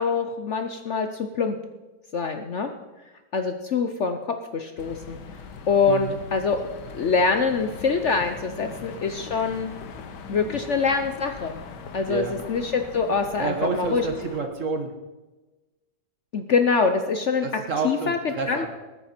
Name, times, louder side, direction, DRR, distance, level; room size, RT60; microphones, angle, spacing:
voice 1, 0.0-1.6 2.1-2.7 3.3-5.2 5.7-6.6 6.9-9.7 10.3-11.6 11.9-14.0 16.3-17.5 17.8-18.2 18.5-18.7, left 5 dB, 55° left, 6 dB, 0.9 m, -24 dB
sound 1, 4.8-14.4, left 5 dB, 90° left, 1.6 m, -41 dB
voice 2, 5.9-6.2 8.5-8.8 10.2-10.6 12.0-12.4 13.4-14.9 17.4-18.7, right 4 dB, 50° right, 5 dB, 1.7 m, -29 dB
20.0 x 9.2 x 4.4 m, 1.2 s
omnidirectional pair, 1.8 m